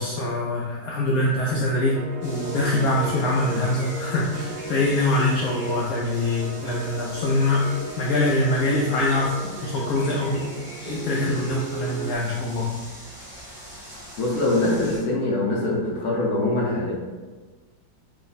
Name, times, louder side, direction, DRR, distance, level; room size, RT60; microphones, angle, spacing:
voice 1, 0.0-2.0 2.2-7.6 8.0-9.3 9.6-10.5 10.8-12.7, left 2 dB, 90° left, -4 dB, 0.7 m, -24 dB
sound 1, 1.8-12.1, right 4 dB, 75° right, 0.8 m, -36 dB
sound 2, 2.2-15.0, equal, 20° right, 0.7 m, -42 dB
voice 2, 14.2-16.9, left 2 dB, 65° left, -4 dB, 1.0 m, -23 dB
3.3 x 2.1 x 3.9 m, 1.3 s
omnidirectional pair, 2.1 m